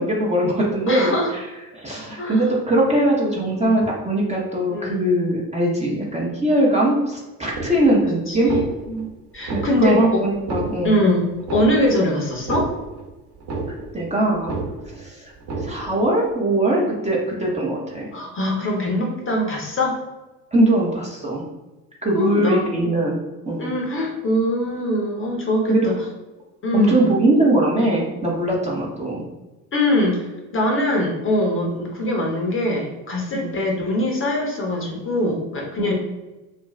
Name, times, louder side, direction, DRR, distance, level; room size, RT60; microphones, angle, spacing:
voice 1, 0.0-1.2 1.7-8.5 9.5-11.0 13.9-14.5 15.0-15.2 15.6-18.1 20.5-21.4 22.0-23.2 23.5-23.7 25.7-25.9 26.7-29.2 31.7-31.8 33.3-33.5 35.8-35.9, right 1 dB, 15° right, -4 dB, 0.7 m, -21 dB
voice 2, 0.9-1.3 2.2-2.4 4.7-5.0 7.8-8.0 8.3-9.1 9.3-10.2 10.8-12.7 18.1-20.0 22.1-23.0 23.6-25.9 26.6-27.1 29.7-35.9, left 1 dB, 25° left, -1 dB, 0.8 m, -23 dB
sound 1, 7.5-8.1 8.3-9.1 9.4-10.1 10.3-11.1 11.4-12.1 12.3-13.1 13.4-14.1 14.3-15.1 15.4-16.1, right 3 dB, 45° right, 1.0 m, -30 dB
2.5 x 2.2 x 3.1 m, 1.1 s
hypercardioid pair, 65°, 47 cm